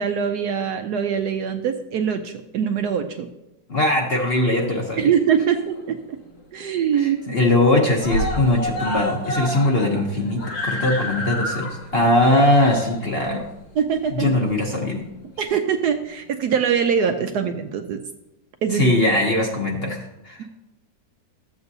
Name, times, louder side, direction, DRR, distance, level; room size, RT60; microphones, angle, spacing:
voice 1, 0.0-3.3 5.0-6.2 6.5-7.3 13.8-14.3 15.4-18.0 18.6-19.0, right 7 dB, 70° right, 6 dB, 1.0 m, -23 dB
voice 2, 3.7-5.1 6.9-13.5 14.1-15.1 18.7-20.5, left 1 dB, 40° left, 0 dB, 0.9 m, -20 dB
Screaming, 5.1-6.0 6.4-6.5 6.8-6.9 7.2-7.7 8.0-14.8 15.7-15.8, equal, 75° left, 2.0 m, -30 dB
13.5 x 7.8 x 2.7 m, 0.94 s
omnidirectional pair, 2.0 m